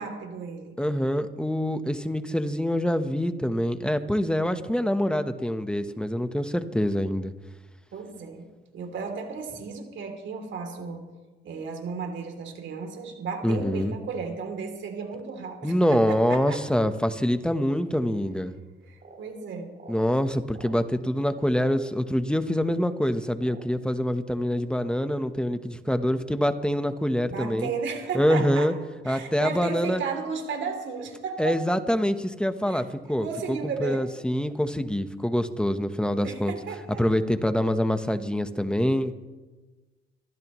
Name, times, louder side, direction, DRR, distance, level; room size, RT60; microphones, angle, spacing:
voice 1, 0.0-0.8 7.9-8.5 8.7-11.0 11.4-16.6 18.9-19.8 27.2-28.7 29.0-31.6 32.7-32.8 33.2-34.1 36.0-37.1, right 5 dB, 70° right, 4 dB, 3.0 m, -34 dB
voice 2, 0.8-7.3 13.4-13.9 15.6-18.5 19.9-27.7 28.1-28.7 29.0-30.0 31.4-36.5 37.0-39.1, equal, 5° left, 9 dB, 1.0 m, -25 dB
Frog Croaking, 19.0-19.2 19.7-20.0 20.5-20.8 21.5-21.8 22.6-22.7 23.4-23.9 24.5-24.7, right 3 dB, 50° right, 6.2 m, -47 dB
25.0 x 14.5 x 3.1 m, 1.2 s
cardioid pair, 90°, 20 cm